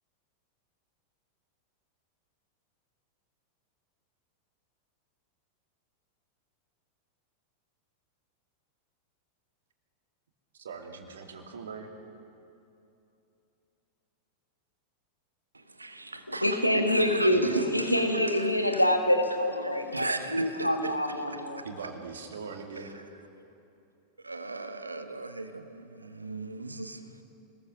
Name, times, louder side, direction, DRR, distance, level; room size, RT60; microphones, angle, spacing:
voice 1, 10.5-11.9 21.6-23.0, right 5 dB, 65° right, 3 dB, 2.4 m, -41 dB
voice 2, 15.5-17.5 18.0-18.8 19.6-21.7 22.8-23.0 24.2-27.2, right 3 dB, 80° right, 9 dB, 1.2 m, -39 dB
voice 3, 16.3-21.6, equal, 90° left, 5 dB, 1.6 m, -26 dB
26.0 x 20.5 x 6.3 m, 2.8 s
figure-of-eight pair, 90°, 0 cm